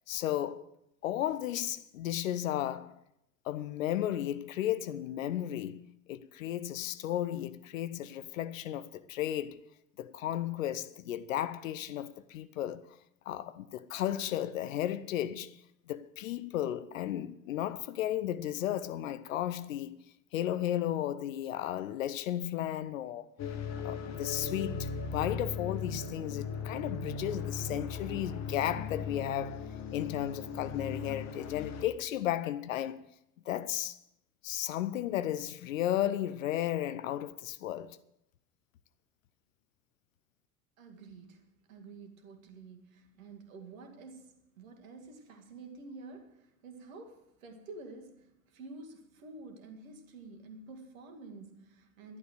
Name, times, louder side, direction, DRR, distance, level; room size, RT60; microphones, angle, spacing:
voice 1, 0.1-0.7 1.0-3.0 3.4-9.6 10.0-13.0 13.3-15.5 15.9-20.0 20.3-23.3 23.8-29.6 29.9-33.0 33.5-34.0 34.4-38.0, left 12 dB, 65° left, 0.7 m, -34 dB
sound 1, 23.4-31.8, left 5 dB, 40° left, 1.6 m, -38 dB
voice 2, 40.8-52.2, right 3 dB, 70° right, 2.1 m, -49 dB
12.0 x 11.0 x 6.4 m
figure-of-eight pair, 70°, 42 cm